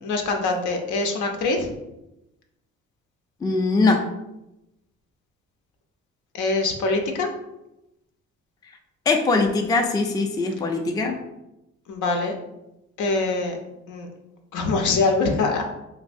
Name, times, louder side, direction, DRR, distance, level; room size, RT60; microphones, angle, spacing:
voice 1, 0.0-1.7 6.3-7.3 11.9-12.4 13.0-13.6 13.9-14.1 14.5-15.6, left 3 dB, 75° left, 3 dB, 0.6 m, -23 dB
voice 2, 3.4-4.0 9.1-11.2, left 3 dB, 15° left, 4 dB, 0.3 m, -21 dB
3.2 x 2.6 x 2.5 m, 0.91 s
cardioid pair, 90°, 30 cm